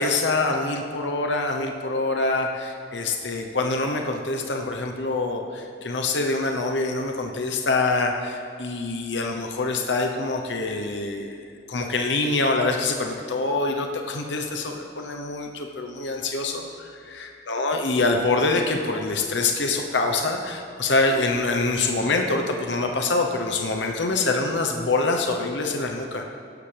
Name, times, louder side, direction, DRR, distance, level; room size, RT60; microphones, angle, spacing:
voice 1, 0.0-26.2, left 3 dB, 85° left, 3 dB, 0.9 m, -25 dB
17.0 x 11.0 x 3.4 m, 2.3 s
head